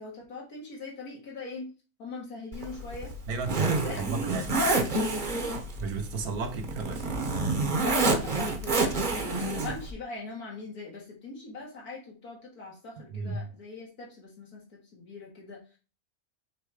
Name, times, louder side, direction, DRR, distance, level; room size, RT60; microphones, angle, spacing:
voice 1, 0.0-1.7 2.0-3.1 3.7-4.0 4.4-5.0 5.3-5.5 7.8-15.6, left 3 dB, 85° left, 2.2 m, -41 dB
Zipper (clothing), 2.5-9.9, right 2 dB, 35° right, 1.0 m, -29 dB
voice 2, 3.3-4.6 5.8-7.2 13.1-13.4, right 4 dB, 85° right, 1.4 m, -34 dB
6.7 x 3.3 x 4.7 m
omnidirectional pair, 1.6 m